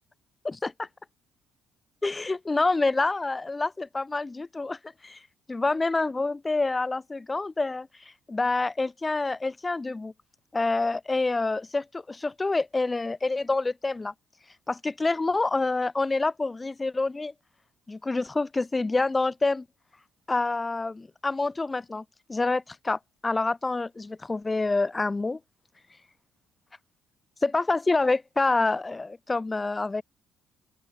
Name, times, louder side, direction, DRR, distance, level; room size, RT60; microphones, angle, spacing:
voice 1, 0.4-0.9 2.0-5.2 5.5-7.9 8.3-10.1 10.5-14.1 14.7-17.3 17.9-19.6 20.3-25.4 27.4-30.0, left 3 dB, 20° left, 2.8 m, -27 dB
open air
supercardioid pair, 75°, 0 cm